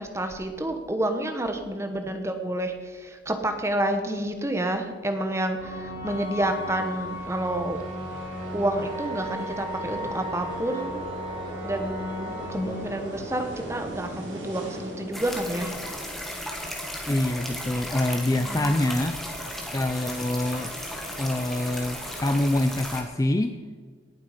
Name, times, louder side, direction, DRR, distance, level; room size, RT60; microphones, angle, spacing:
voice 1, 0.0-7.8 8.5-11.0 11.6-15.7 18.3-18.8, right 1 dB, 15° right, 6 dB, 1.1 m, -29 dB
sound 1, 5.6-14.0, equal, 50° right, 4.5 m, -36 dB
sound 2, 6.1-22.4, right 1 dB, 70° right, 3.9 m, -42 dB
sound 3, 15.1-23.0, equal, ahead, 1.4 m, -35 dB
voice 2, 17.1-19.4 19.7-20.7 21.2-23.6, left 1 dB, 15° left, 8 dB, 0.4 m, -26 dB
18.5 x 7.7 x 5.0 m, 1.5 s
head